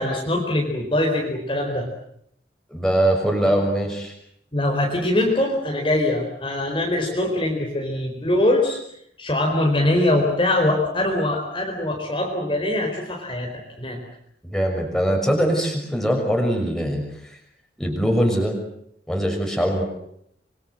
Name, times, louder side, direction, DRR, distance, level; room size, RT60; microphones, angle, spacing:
voice 1, 0.0-1.9 4.5-8.8 9.2-13.5 13.8-14.0, left 1 dB, 30° left, 0 dB, 4.5 m, -22 dB
voice 2, 2.7-4.1 14.4-17.4 17.8-18.5 19.1-19.8, right 1 dB, 5° left, 2 dB, 6.3 m, -22 dB
26.5 x 24.0 x 7.9 m, 0.72 s
head